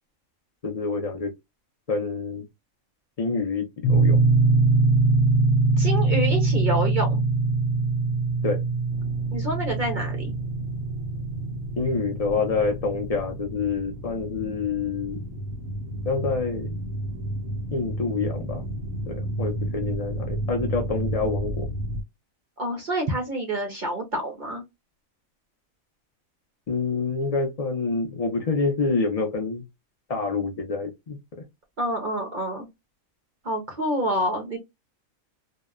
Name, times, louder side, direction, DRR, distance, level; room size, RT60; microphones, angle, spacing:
voice 1, 0.6-1.3 1.9-2.4 3.2-4.2 8.4-8.6 11.8-15.2 16.0-16.8 17.7-18.6 19.1-21.7 26.7-29.6 30.1-31.2, left 4 dB, 70° left, 0.3 m, -27 dB
sound 1, 3.8-13.4, right 3 dB, 85° left, 1.0 m, -23 dB
voice 2, 5.8-7.2 9.3-10.3 22.6-24.6 31.8-32.7 33.4-34.6, right 1 dB, 50° right, 0.6 m, -27 dB
sound 2, 8.9-22.0, right 1 dB, 85° right, 1.1 m, -33 dB
2.8 x 2.0 x 2.3 m
omnidirectional pair, 1.4 m